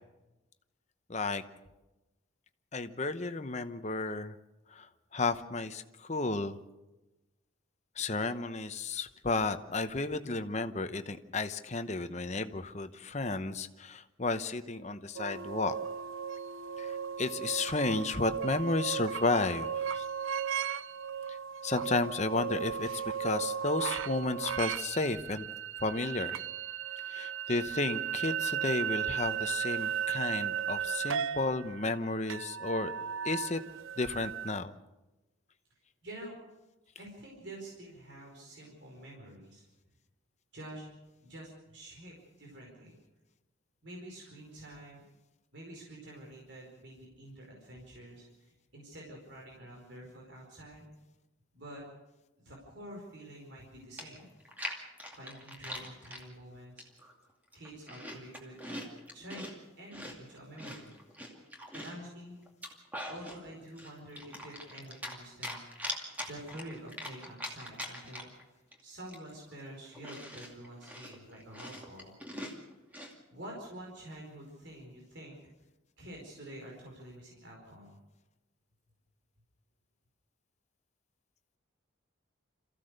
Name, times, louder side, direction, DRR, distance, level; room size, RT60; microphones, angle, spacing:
voice 1, 1.1-1.4 2.7-4.4 4.7-6.6 8.0-15.8 16.8-20.0 21.3-21.4 21.6-22.9 23.2-25.5 25.8-26.4 27.1-32.9 33.2-33.6 34.0-34.7, left 3 dB, 35° left, 10 dB, 0.9 m, -33 dB
sound 1, 15.2-34.5, right 8 dB, 80° right, 0.6 m, -36 dB
voice 2, 36.0-36.4 37.0-39.6 40.5-40.9 41.2-43.0 43.8-45.0 45.5-50.9 51.5-51.8 52.4-54.3 55.1-56.8 57.5-58.8 59.1-59.5 59.8-60.9 61.7-62.4 63.1-65.6 66.2-68.3 68.8-72.1 73.3-75.4 76.0-78.0, right 1 dB, 55° right, -1 dB, 4.9 m, -48 dB
Chewing mastication, 53.6-53.7 54.0-56.2 56.8-57.1 57.5-59.5 59.9-62.0 62.5-63.4 63.8-65.2 65.4-68.4 68.7-68.8 69.1-73.1, equal, 10° right, 2.4 m, -42 dB
27.0 x 15.0 x 6.6 m, 1.0 s
head